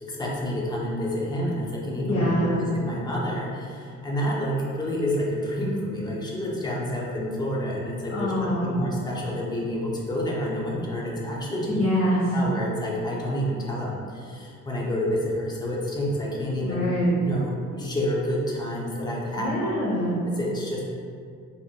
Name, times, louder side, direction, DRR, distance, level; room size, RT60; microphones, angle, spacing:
voice 1, 0.0-11.8 12.3-16.9 17.2-19.5 20.3-20.8, equal, 15° left, -4 dB, 0.4 m, -29 dB
voice 2, 2.0-2.6 8.1-8.7 11.7-12.2 16.6-17.1 19.4-20.1, left 1 dB, 90° left, -14 dB, 1.2 m, -25 dB
3.2 x 2.5 x 2.3 m, 2.3 s
cardioid pair, 155°, 32 cm